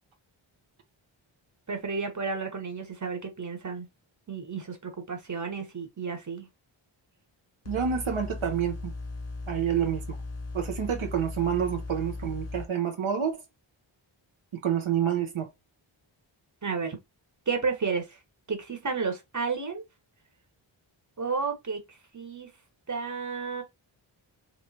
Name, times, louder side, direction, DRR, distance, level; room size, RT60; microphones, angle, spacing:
voice 1, 1.7-3.9 4.3-6.5 16.6-17.0 17.5-18.2 18.5-19.8 21.2-21.8 22.1-22.5 22.9-23.6, right 5 dB, 35° right, 1.2 m, -32 dB
sound 1, 7.6-12.6, left 3 dB, 35° left, 0.6 m, -37 dB
voice 2, 7.7-8.9 9.5-10.2 10.5-13.4 14.6-15.5, right 8 dB, 75° right, 0.9 m, -28 dB
3.1 x 3.1 x 2.8 m
wide cardioid pair, 80°, 48 cm